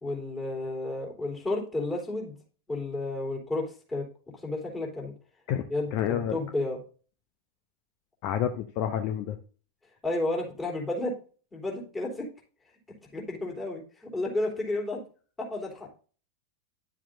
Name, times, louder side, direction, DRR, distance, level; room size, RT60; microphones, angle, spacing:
voice 1, 0.0-2.3 2.7-4.1 4.4-5.1 5.7-6.8 10.0-11.1 11.5-12.3 13.1-13.8 14.1-15.0 15.4-15.9, left 2 dB, 15° left, -2 dB, 3.3 m, -31 dB
voice 2, 5.5-6.4 8.2-9.4, left 10 dB, 45° left, 8 dB, 0.8 m, -29 dB
10.5 x 7.5 x 2.7 m, 0.39 s
figure-of-eight pair, 90°, 0 cm